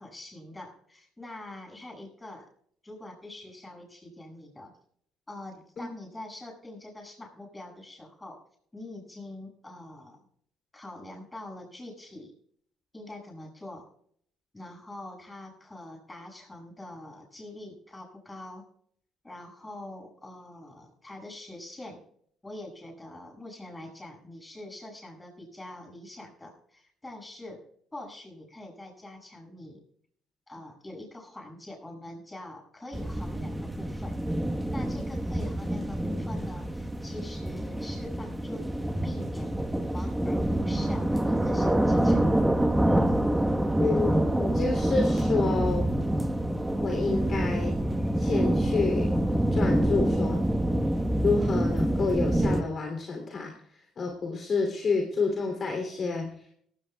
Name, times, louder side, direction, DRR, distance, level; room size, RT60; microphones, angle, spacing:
voice 1, 0.0-2.5 2.8-4.7 5.3-8.4 8.7-10.2 10.7-12.3 12.9-13.9 14.5-18.7 19.2-22.0 22.4-27.6 27.9-29.8 30.5-34.2 34.7-39.5 39.9-42.3, left 1 dB, 15° left, 2 dB, 7.4 m, -44 dB
sound 1, 32.9-52.6, right 1 dB, 5° right, 1.3 m, -26 dB
voice 2, 43.8-45.9 46.8-47.7 48.1-49.1 49.5-50.4 51.2-56.4, left 4 dB, 45° left, 1 dB, 3.2 m, -29 dB
18.5 x 16.5 x 2.4 m, 0.63 s
supercardioid pair, 85°, 0 cm